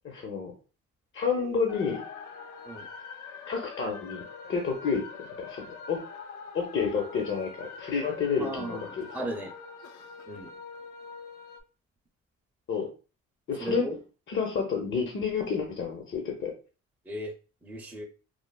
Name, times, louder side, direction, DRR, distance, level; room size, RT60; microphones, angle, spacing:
voice 1, 0.0-0.5 1.1-2.0 3.5-5.0 5.4-6.0 6.5-9.1 12.7-12.9 13.5-13.8 14.3-16.5, left 5 dB, 40° left, 2 dB, 0.6 m, -30 dB
sound 1, 1.7-11.6, left 5 dB, 85° left, 0.5 m, -44 dB
voice 2, 8.4-9.5 10.3-10.5 13.6-14.0 17.0-17.3 17.6-18.0, right 1 dB, 5° right, -1 dB, 0.5 m, -36 dB
3.2 x 2.0 x 2.2 m, 0.34 s
cardioid pair, 90°, 30 cm